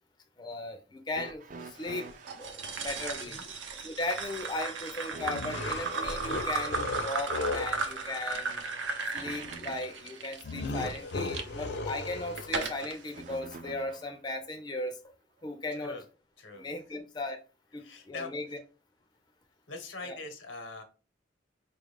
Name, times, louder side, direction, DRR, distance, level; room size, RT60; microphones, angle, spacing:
voice 1, 0.4-3.4 3.8-8.6 9.1-15.0 15.4-16.0 16.6-17.4 17.7-18.6 20.0-20.2, left 2 dB, 25° left, 0.4 m, -37 dB
sound 1, 1.1-2.6 5.1-10.2 13.1-14.2 15.4-15.5 16.6-16.7, right 3 dB, 45° right, 0.4 m, -48 dB
sound 2, 2.3-11.4 12.0-12.9, right 4 dB, 90° right, 0.7 m, -35 dB
sound 3, 5.2-7.8 10.4-12.7, left 3 dB, 65° left, 0.6 m, -36 dB
voice 2, 15.7-16.1 16.4-16.7 17.8-18.3 19.7-20.8, left 3 dB, 85° left, 0.9 m, -42 dB
4.6 x 2.4 x 3.3 m
head